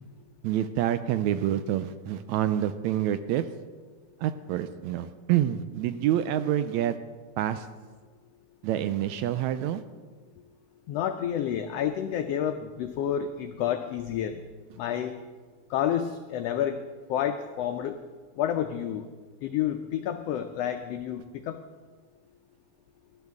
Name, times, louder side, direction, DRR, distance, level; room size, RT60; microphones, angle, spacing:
voice 1, 0.4-3.5 4.2-7.0 7.4-7.7 8.6-9.8, right 11 dB, 80° right, 12 dB, 1.8 m, -27 dB
voice 2, 10.9-14.4 14.8-15.2 15.7-16.8 17.1-18.0 18.4-19.0 19.4-21.6, left 10 dB, 85° left, 7 dB, 1.4 m, -29 dB
18.5 x 12.0 x 3.5 m, 1.4 s
omnidirectional pair, 3.5 m